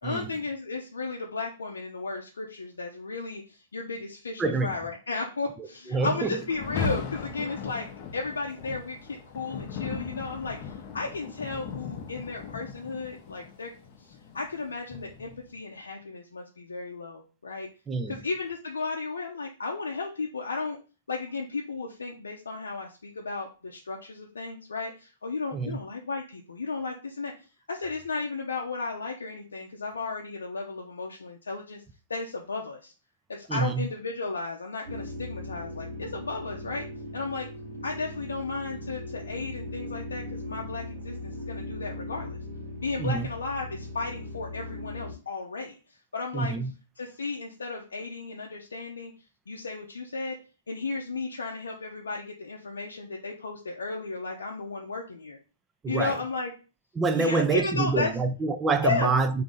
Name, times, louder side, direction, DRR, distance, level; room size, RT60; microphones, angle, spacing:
voice 1, 0.0-7.9 8.1-13.7 14.0-17.7 18.1-20.8 21.1-27.3 27.7-31.8 32.1-32.9 33.3-36.9 37.1-37.5 37.8-42.4 42.8-46.6 47.0-49.1 49.5-50.4 50.7-55.4 55.9-56.5 57.1-58.1 58.8-59.1, left 4 dB, 80° left, 0.6 m, -34 dB
voice 2, 4.4-4.7 5.9-6.3 17.9-18.2 25.5-25.8 33.5-33.9 43.0-43.3 46.3-46.7 55.8-56.2 57.0-59.4, right 4 dB, 15° right, 0.5 m, -26 dB
Rain, 6.5-15.5, left 5 dB, 40° left, 0.7 m, -38 dB
sound 1, 34.9-45.1, left 1 dB, 40° right, 1.4 m, -39 dB
3.5 x 2.7 x 3.9 m
hypercardioid pair, 120°, 0 cm